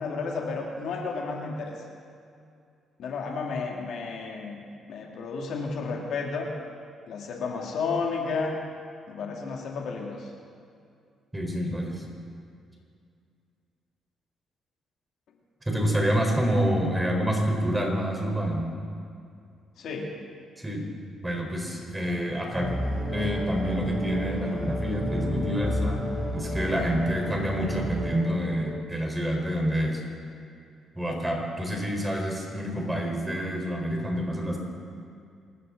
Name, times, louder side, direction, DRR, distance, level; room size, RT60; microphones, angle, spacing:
voice 1, 0.0-1.7 3.0-6.5 7.1-8.6 9.1-10.3 19.8-20.1, left 4 dB, 70° left, 0 dB, 2.2 m, -32 dB
voice 2, 11.3-12.0 15.7-18.6 20.6-20.9 21.2-22.7 23.1-26.0 26.3-30.0 30.9-34.6, equal, 10° right, 0 dB, 4.0 m, -27 dB
sound 1, 22.5-28.8, equal, 30° right, 3.0 m, -31 dB
25.5 x 13.5 x 3.8 m, 2.4 s
cardioid pair, 90°, 0 cm